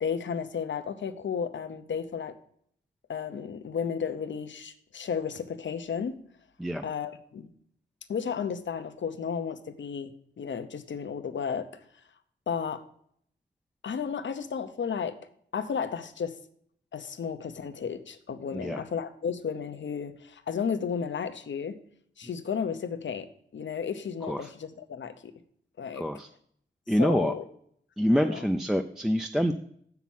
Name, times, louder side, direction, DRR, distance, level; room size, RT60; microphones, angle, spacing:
voice 1, 0.0-2.4 3.1-6.2 6.8-7.5 8.1-11.7 12.5-12.8 13.8-15.2 15.5-16.4 16.9-21.8 22.2-23.3 23.5-25.3 25.8-26.0 27.0-27.4 28.1-28.5, left 6 dB, 70° left, 9 dB, 0.8 m, -33 dB
voice 2, 18.5-18.8 24.2-24.5 25.9-26.3 26.9-27.3 28.0-29.5, equal, ahead, 6 dB, 0.4 m, -26 dB
7.3 x 5.8 x 7.1 m, 0.66 s
wide cardioid pair, 110°, 20 cm